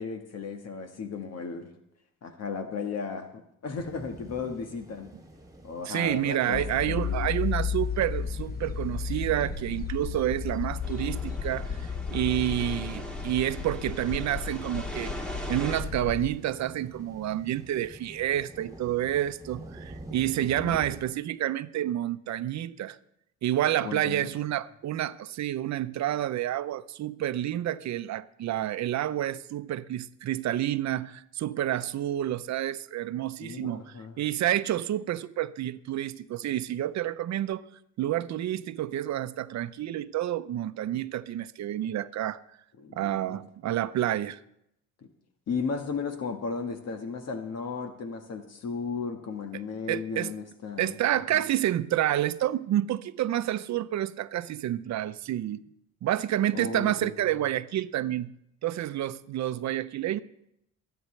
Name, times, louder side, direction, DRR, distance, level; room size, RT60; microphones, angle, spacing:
voice 1, 0.0-1.7 2.2-3.3 3.6-5.1 5.6-7.4 20.4-20.8 23.8-24.3 33.4-34.2 42.8-43.4 45.5-50.9 51.3-51.4 56.5-57.1, left 5 dB, 55° left, 1.5 m, -35 dB
sound 1, 3.8-21.1, right 2 dB, 10° right, 2.2 m, -48 dB
voice 2, 5.9-23.0 23.4-33.8 34.2-37.6 38.0-42.4 42.9-44.4 49.5-49.6 49.9-50.3 50.8-55.6 56.0-58.3 58.6-60.2, right 12 dB, 65° right, 0.7 m, -29 dB
sound 2, 6.5-16.3, left 6 dB, 30° left, 0.8 m, -33 dB
sound 3, 10.8-15.8, right 1 dB, 5° left, 2.1 m, -41 dB
23.5 x 9.4 x 3.3 m
cardioid pair, 90°, 30 cm